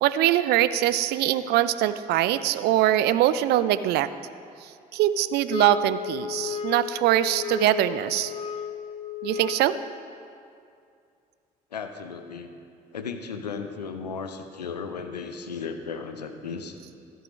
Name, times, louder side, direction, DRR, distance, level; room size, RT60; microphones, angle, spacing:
voice 1, 0.0-4.1 4.9-8.3 9.2-9.7, right 13 dB, 55° right, 14 dB, 0.5 m, -22 dB
sound 1, 5.5-9.9, left 8 dB, 30° left, 0.5 m, -34 dB
voice 2, 11.7-12.5 12.9-16.8, left 5 dB, 85° left, 7 dB, 0.6 m, -35 dB
13.5 x 7.8 x 5.1 m, 2.4 s
figure-of-eight pair, 50°, 20 cm